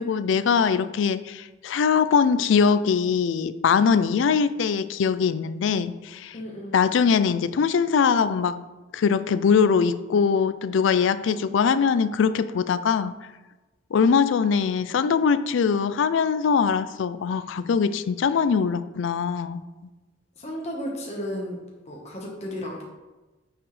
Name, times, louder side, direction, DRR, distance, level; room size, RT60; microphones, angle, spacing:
voice 1, 0.0-6.3 6.7-8.6 8.9-13.2 13.9-19.6, left 6 dB, 75° left, 0.3 m, -22 dB
voice 2, 6.3-6.8 20.4-21.6 21.8-22.9, equal, 35° left, 1.1 m, -33 dB
8.8 x 4.9 x 3.2 m
head